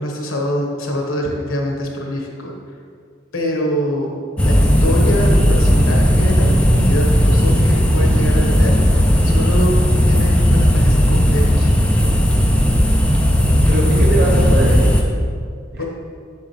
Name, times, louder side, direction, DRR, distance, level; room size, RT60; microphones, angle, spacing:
voice 1, 0.0-2.5 3.3-4.1 4.4-9.8 10.1-11.7 15.8-15.9, equal, 90° left, 0 dB, 1.2 m, -24 dB
sound 1, 4.4-15.0, equal, 5° left, 0.4 m, -14 dB
voice 2, 13.7-15.1 15.7-15.8, right 1 dB, 50° right, -3 dB, 0.9 m, -21 dB
7.2 x 5.8 x 3.2 m, 2.2 s
head